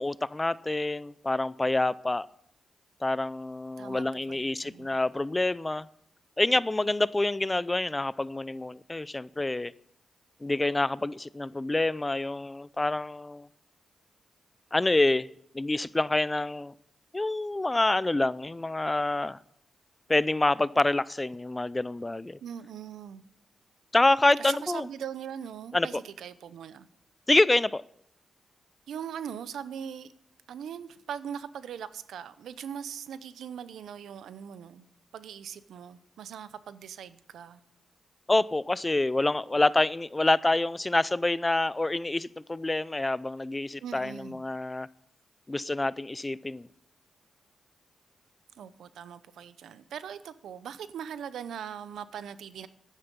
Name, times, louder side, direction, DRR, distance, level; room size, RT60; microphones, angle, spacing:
voice 1, 0.0-2.3 3.0-5.9 6.4-9.7 10.4-13.5 14.7-15.3 15.5-16.7 17.1-19.4 20.1-22.4 23.9-24.9 25.7-25.9 27.3-27.8 38.3-44.9 45.5-46.7, left 2 dB, 20° left, 19 dB, 0.4 m, -27 dB
voice 2, 3.8-5.0 22.4-23.2 24.4-26.9 28.9-30.1 30.5-34.9 35.1-37.6 43.8-44.4 48.6-52.7, right 8 dB, 85° right, 15 dB, 0.7 m, -40 dB
11.5 x 10.0 x 5.3 m, 0.73 s
cardioid pair, 75°, 0 cm